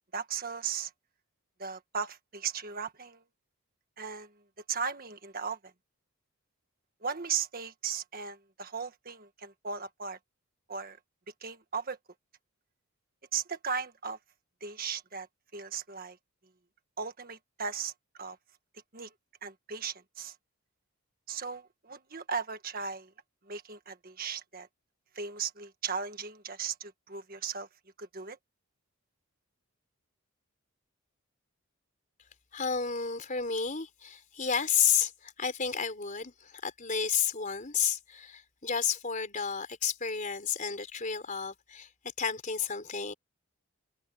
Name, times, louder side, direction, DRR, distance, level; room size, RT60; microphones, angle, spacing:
voice 1, 0.1-0.9 1.6-3.2 4.0-4.3 4.7-5.7 7.0-10.2 10.7-11.0 11.4-12.0 13.3-14.2 14.6-15.3 15.5-16.2 17.0-17.9 18.2-18.4 18.9-19.1 19.4-20.4 21.3-23.1 23.5-24.7 25.1-27.7 28.0-28.4, right 6 dB, 40° right, 1.6 m, -37 dB
voice 2, 32.5-41.9 42.2-43.1, left 7 dB, 35° left, 4.2 m, -31 dB
head